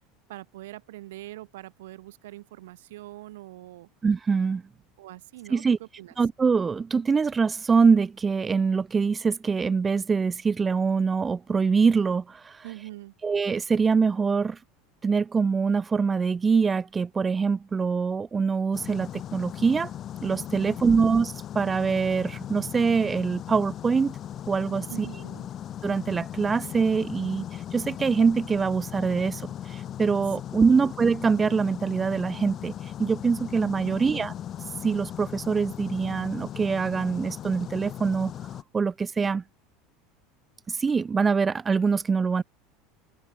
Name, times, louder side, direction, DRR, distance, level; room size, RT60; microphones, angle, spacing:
voice 1, 0.3-3.9 5.0-6.1 12.6-13.1 20.6-21.1 24.9-25.5 30.6-30.9 33.8-34.3, right 16 dB, 85° right, 7.6 m, -43 dB
voice 2, 4.0-4.6 5.5-5.8 6.2-12.6 13.2-14.6 15.0-19.9 20.2-24.2 24.5-25.1 25.8-34.3 34.8-38.3 38.7-39.4 40.7-42.4, right 5 dB, 20° right, 1.2 m, -24 dB
sound 1, 18.7-38.6, left 10 dB, 40° left, 4.7 m, -38 dB
supercardioid pair, 115°, 0 cm